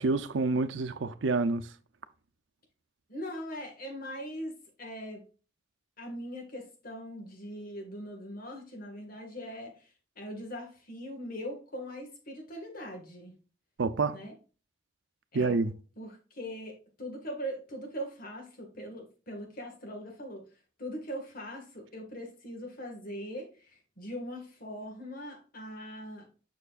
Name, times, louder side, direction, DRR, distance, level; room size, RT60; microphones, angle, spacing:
voice 1, 0.0-1.7 13.8-14.2 15.3-15.7, right 3 dB, 85° right, 0.6 m, -28 dB
voice 2, 3.1-5.2 6.0-9.9 10.2-13.3 14.1-14.3 15.3-15.6 16.0-20.5 20.8-26.3, equal, 50° left, 1.9 m, -41 dB
6.8 x 6.0 x 2.5 m
head